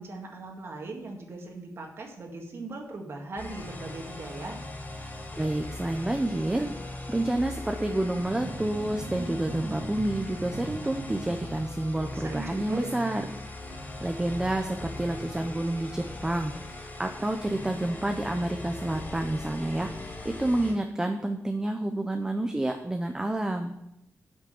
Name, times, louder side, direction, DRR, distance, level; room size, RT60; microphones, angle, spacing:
voice 1, 0.0-4.6 12.1-12.9, right 3 dB, 50° right, 2 dB, 2.0 m, -39 dB
sound 1, 3.4-20.7, left 2 dB, 35° left, 3.8 m, -40 dB
voice 2, 5.4-6.7 7.1-13.3 14.0-23.7, right 1 dB, 10° right, 5 dB, 0.6 m, -29 dB
sound 2, 7.7-12.6, right 2 dB, 75° right, 1.7 m, -41 dB
8.4 x 6.3 x 7.7 m, 0.83 s
wide cardioid pair, 170°, 5 cm